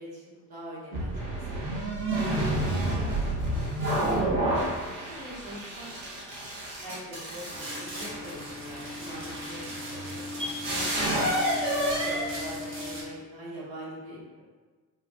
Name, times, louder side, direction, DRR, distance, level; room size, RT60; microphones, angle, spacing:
voice 1, 0.0-3.4 3.9-5.9 6.8-9.6 9.9-11.4 11.9-14.4, equal, 45° right, -6 dB, 1.5 m, -43 dB
sound 1, 0.9-12.9, right 1 dB, 80° right, 1.1 m, -30 dB
sound 2, 7.5-13.0, left 1 dB, 25° right, 1.1 m, -37 dB
3.7 x 3.0 x 2.3 m, 1.3 s
hypercardioid pair, 55°, 49 cm